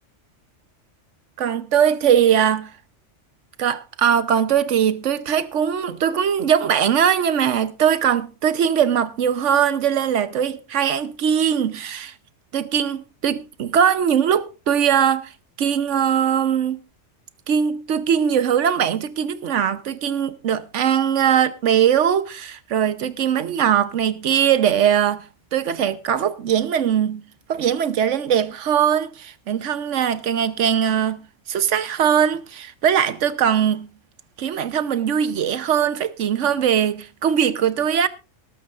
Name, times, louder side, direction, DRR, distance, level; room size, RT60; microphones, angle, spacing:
voice 1, 1.4-2.7 3.6-12.1 12.5-15.3 15.6-16.8 17.5-25.3 25.5-27.2 27.5-33.9 34.4-38.1, right 8 dB, 80° right, 1.2 m, -20 dB
19.0 x 13.0 x 2.5 m
omnidirectional pair, 1.2 m